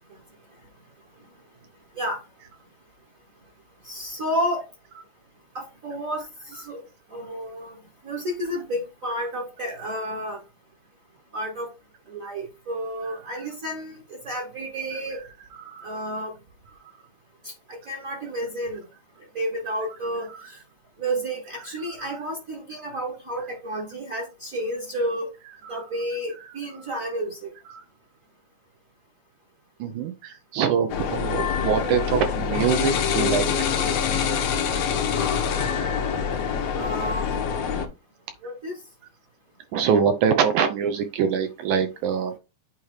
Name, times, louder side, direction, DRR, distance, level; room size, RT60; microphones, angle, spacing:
voice 1, 3.8-4.6 5.5-6.8 7.1-7.8 8.0-10.4 11.3-11.7 12.1-15.2 15.8-16.3 17.4-18.8 19.3-20.6 21.0-25.3 25.7-27.5 36.7-37.2 38.4-38.8, equal, 40° right, 1.1 m, -31 dB
voice 2, 15.5-15.9 16.8-16.9 20.3-20.4 21.8-22.1 25.6-25.8 27.7-27.8 29.8-33.5 37.7-37.8 39.7-42.4, right 7 dB, 75° right, 1.9 m, -24 dB
sound 1, 30.9-37.9, left 7 dB, 70° left, 1.5 m, -25 dB
8.5 x 2.9 x 4.8 m
omnidirectional pair, 4.0 m